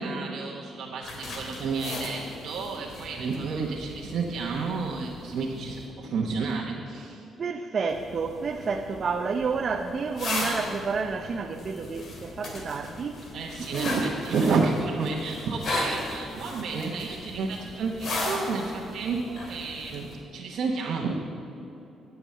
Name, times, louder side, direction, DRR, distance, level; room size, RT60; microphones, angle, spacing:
voice 1, 0.0-7.2 13.3-21.1, right 4 dB, 65° right, -1 dB, 1.1 m, -30 dB
sound 1, 1.0-5.9 7.9-20.2, left 2 dB, 55° left, 2.7 m, -37 dB
voice 2, 7.4-13.2 13.8-14.1, right 5 dB, 45° right, 5 dB, 0.7 m, -30 dB
12.5 x 7.2 x 7.5 m, 3.0 s
cardioid pair, 90°, 0 cm